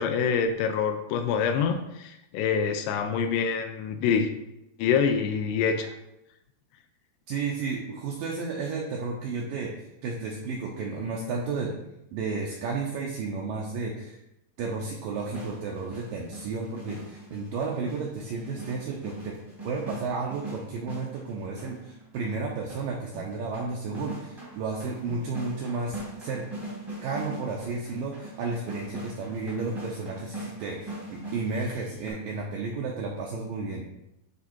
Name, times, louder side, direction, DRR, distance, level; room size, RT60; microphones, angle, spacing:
voice 1, 0.0-4.3 4.8-5.9, left 6 dB, 85° left, 6 dB, 2.5 m, -26 dB
voice 2, 7.3-11.7 12.1-14.2 14.6-19.4 19.6-26.4 27.0-33.8, right 4 dB, 80° right, -1 dB, 2.0 m, -32 dB
sound 1, 15.2-32.1, right 1 dB, 20° right, 0.7 m, -41 dB
9.8 x 3.5 x 4.4 m, 0.87 s
omnidirectional pair, 4.9 m